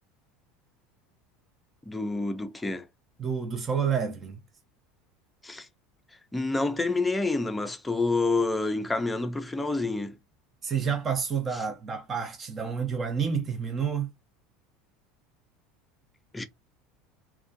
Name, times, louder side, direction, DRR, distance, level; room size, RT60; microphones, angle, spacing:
voice 1, 1.9-2.8 5.4-5.7 6.3-10.2 16.3-16.4, left 3 dB, 10° left, 0.5 m, -28 dB
voice 2, 3.2-4.4 10.6-14.1, right 6 dB, 30° right, 0.7 m, -29 dB
2.4 x 2.2 x 2.5 m
hypercardioid pair, 90°, 0 cm